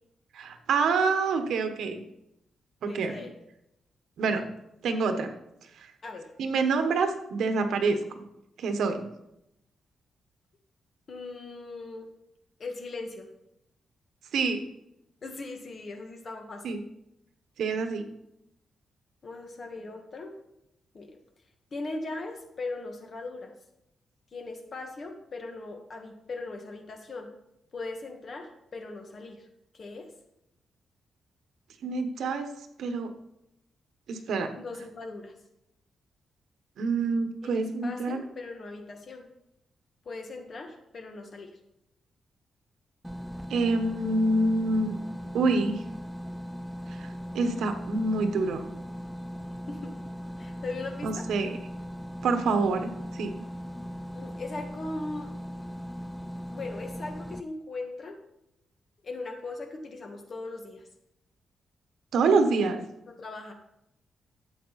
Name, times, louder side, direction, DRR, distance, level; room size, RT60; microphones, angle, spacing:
voice 1, 0.3-2.0 2.8-3.3 4.2-4.4 4.8-5.3 6.4-8.2 8.6-9.1 14.3-14.6 16.6-16.8 17.6-18.1 31.8-32.5 32.8-33.1 34.1-34.5 36.8-38.2 43.5-45.0 45.3-45.8 46.9-47.1 47.3-48.6 51.0-51.6 52.2-53.4 62.1-62.8, right 3 dB, 80° right, 7 dB, 1.3 m, -26 dB
voice 2, 2.9-3.3 6.0-6.3 11.1-12.1 12.6-13.3 15.2-16.7 19.2-20.3 20.9-21.1 21.7-23.5 24.3-27.3 27.7-29.5 29.7-30.1 34.6-35.3 37.4-39.3 40.1-41.5 49.7-49.9 50.4-51.2 54.1-55.3 56.5-58.2 59.0-60.8 63.2-63.5, left 3 dB, 40° left, 4 dB, 1.7 m, -39 dB
sound 1, 43.0-57.4, equal, ahead, 0.3 m, -39 dB
13.0 x 8.2 x 4.2 m, 0.84 s
wide cardioid pair, 145°, 0 cm